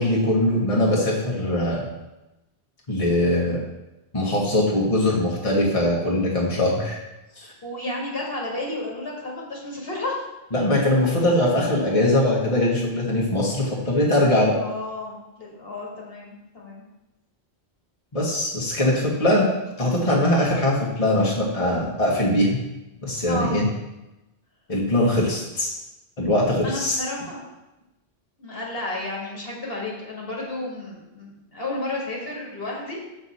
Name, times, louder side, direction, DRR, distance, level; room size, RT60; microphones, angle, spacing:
voice 1, 0.0-1.9 2.9-3.6 4.1-7.0 7.4-7.5 10.5-14.6 18.1-19.5 19.8-22.6 23.0-23.7 24.7-25.7 26.2-27.0, left 1 dB, 35° left, -4 dB, 1.4 m, -21 dB
voice 2, 7.6-10.2 14.6-16.8 23.2-23.6 26.6-27.4 28.4-33.0, left 2 dB, 60° left, -3 dB, 1.9 m, -32 dB
6.9 x 6.1 x 4.2 m, 0.99 s
omnidirectional pair, 1.1 m